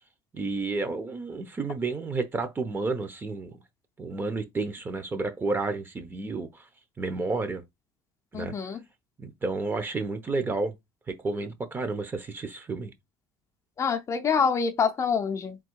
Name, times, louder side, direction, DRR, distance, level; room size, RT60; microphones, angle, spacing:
voice 1, 0.3-3.6 4.0-6.7 7.0-7.6 8.3-8.5 9.2-10.7 11.1-12.9, right 3 dB, 20° right, 0.9 m, -31 dB
voice 2, 8.3-8.8 13.8-15.6, left 6 dB, 30° left, 0.6 m, -26 dB
3.8 x 3.0 x 4.6 m
cardioid pair, 120°, 10 cm